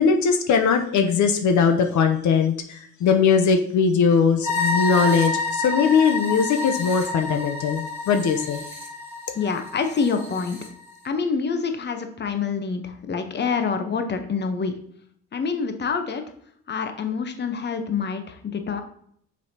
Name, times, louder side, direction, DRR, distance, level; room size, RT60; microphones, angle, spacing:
voice 1, 0.0-8.6, left 6 dB, 75° left, 6 dB, 0.8 m, -20 dB
sound 1, 4.4-10.7, left 3 dB, 10° right, 2.3 m, -29 dB
voice 2, 9.3-10.6 11.0-14.8 15.3-16.2 16.7-18.8, left 5 dB, 35° left, 7 dB, 0.9 m, -26 dB
6.5 x 5.3 x 2.8 m, 0.65 s
cardioid pair, 90°, 30 cm